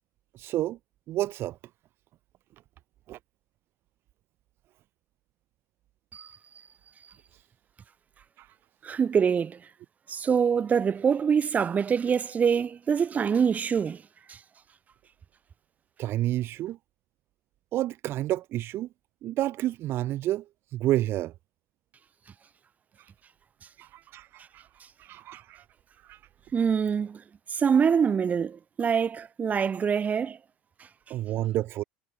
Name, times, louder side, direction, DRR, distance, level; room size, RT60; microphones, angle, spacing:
voice 1, 0.3-0.8 1.1-1.6 3.1-3.2 8.4-8.5 16.0-16.8 17.7-18.9 19.2-20.4 20.7-21.3 23.8-24.7 25.0-25.6 26.0-26.2 31.1-31.8, right 14 dB, 55° right, 3.7 m, -30 dB
voice 2, 8.8-9.6 10.1-14.0 14.3-14.4 26.5-27.2 27.5-30.4, right 7 dB, 35° right, 7.4 m, -25 dB
hypercardioid pair, 85°, 5 cm